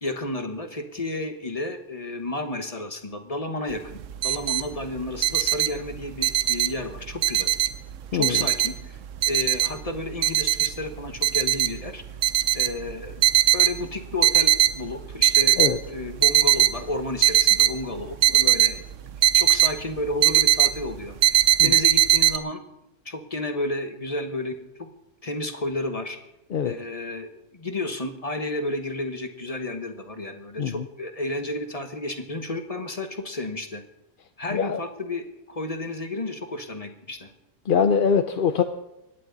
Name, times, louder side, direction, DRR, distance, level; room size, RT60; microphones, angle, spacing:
voice 1, 0.0-4.0 4.2-7.5 8.1-9.0 9.3-12.0 12.5-15.6 15.9-18.8 19.2-21.1 21.6-22.6 23.0-24.9 25.2-26.2 26.6-33.8 34.4-37.3, left 2 dB, 30° left, 6 dB, 1.3 m, -32 dB
sound 1, 3.7-3.8 4.0-4.7 5.0-6.8 7.2-8.0 8.2-9.9 10.2-10.8 11.2-11.8 12.2-13.8 14.1-14.8 15.1-15.8 16.1-16.7 17.2-19.7 20.0-20.8 21.2-22.4, right 13 dB, 85° right, 1.1 m, -19 dB
voice 2, 37.7-38.6, left 6 dB, 50° left, 8 dB, 0.8 m, -22 dB
25.0 x 11.0 x 4.0 m, 0.90 s
omnidirectional pair, 1.3 m